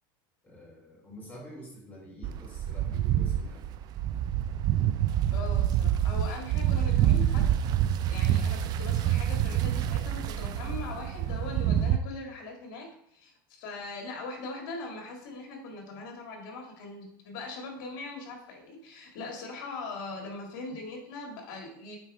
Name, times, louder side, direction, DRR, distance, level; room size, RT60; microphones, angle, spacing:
voice 1, 0.4-3.6, equal, 15° left, -4 dB, 2.9 m, -47 dB
sound 1, 2.2-12.0, right 11 dB, 35° right, 0.3 m, -27 dB
voice 2, 5.3-7.5 8.1-22.0, left 3 dB, 65° left, 1 dB, 2.0 m, -41 dB
8.9 x 4.4 x 3.2 m, 0.72 s
supercardioid pair, 135°, 11 cm